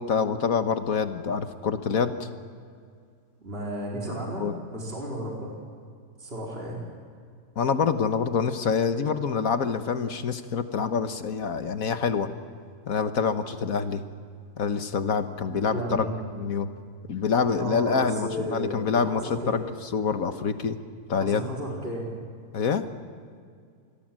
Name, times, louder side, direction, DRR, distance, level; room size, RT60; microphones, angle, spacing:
voice 1, 0.0-2.3 4.4-4.6 7.6-12.3 12.9-14.0 14.6-16.1 16.3-16.7 17.1-20.8 21.1-21.5 22.5-22.8, left 6 dB, 60° left, 9 dB, 1.6 m, -26 dB
voice 2, 3.4-5.5 6.2-6.8 15.7-16.1 17.6-19.6 21.2-22.1, right 1 dB, 35° right, -3 dB, 4.7 m, -33 dB
27.5 x 21.0 x 7.6 m, 2.2 s
omnidirectional pair, 1.7 m